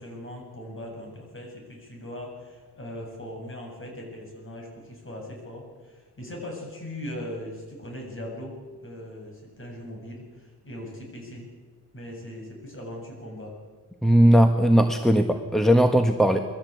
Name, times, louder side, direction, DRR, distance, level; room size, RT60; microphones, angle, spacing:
voice 1, 0.0-8.6 8.8-11.5 11.9-13.5, left 1 dB, 40° left, 0 dB, 7.8 m, -39 dB
voice 2, 14.0-16.4, equal, ahead, 5 dB, 1.4 m, -18 dB
21.5 x 15.0 x 8.4 m, 1.5 s
cardioid pair, 90°, 33 cm